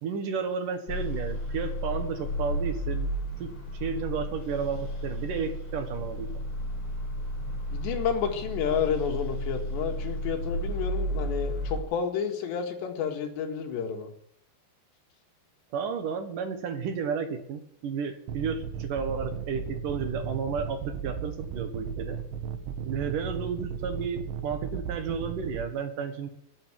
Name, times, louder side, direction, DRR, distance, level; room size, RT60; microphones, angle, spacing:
voice 1, 0.0-3.1 3.4-3.5 3.8-6.3 15.7-22.2 22.8-26.3, right 6 dB, 60° right, 7 dB, 2.7 m, -32 dB
sound 1, 0.9-11.8, equal, 30° left, 5.0 m, -33 dB
voice 2, 7.7-14.1, left 7 dB, 85° left, 4 dB, 4.2 m, -30 dB
sound 2, 18.3-25.7, right 6 dB, 80° right, 3.3 m, -35 dB
17.0 x 8.9 x 9.1 m, 0.73 s
omnidirectional pair, 4.9 m